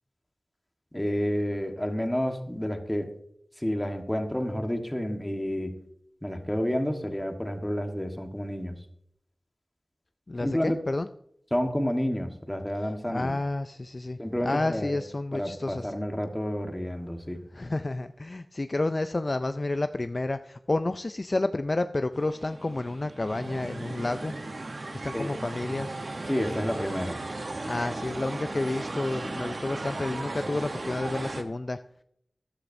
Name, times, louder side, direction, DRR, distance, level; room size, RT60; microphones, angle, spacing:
voice 1, 0.9-3.1 3.6-5.7 6.2-8.8 10.4-10.8 11.5-13.4 14.2-15.0 15.3-17.4 25.1-25.4 26.3-27.2, equal, 10° left, 5 dB, 1.3 m, -30 dB
voice 2, 10.3-11.1 13.1-15.9 17.5-24.6 25.0-26.0 27.6-31.8, left 2 dB, 40° left, 10 dB, 0.4 m, -30 dB
sound 1, 22.1-31.4, right 2 dB, 60° right, 0.9 m, -36 dB
13.0 x 11.5 x 2.6 m, 0.71 s
wide cardioid pair, 75°, 0 cm